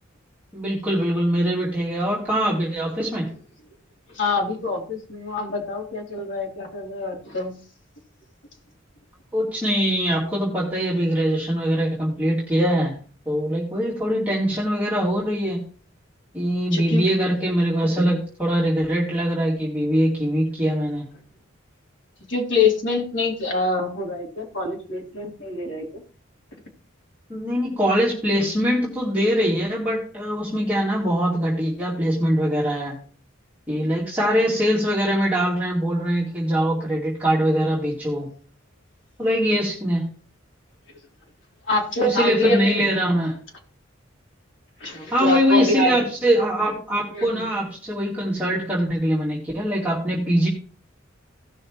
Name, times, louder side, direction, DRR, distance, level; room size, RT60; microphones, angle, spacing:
voice 1, 0.5-3.3 9.3-13.0 13.3-15.6 16.3-21.0 27.3-33.0 33.7-38.3 39.2-40.1 42.0-43.3 45.1-50.5, equal, 10° right, -6 dB, 2.4 m, -22 dB
voice 2, 4.1-7.5 16.7-17.1 22.3-26.0 41.7-42.9 44.8-46.0 47.1-47.4, left 3 dB, 65° left, -1 dB, 3.5 m, -25 dB
17.0 x 6.3 x 3.1 m, 0.41 s
head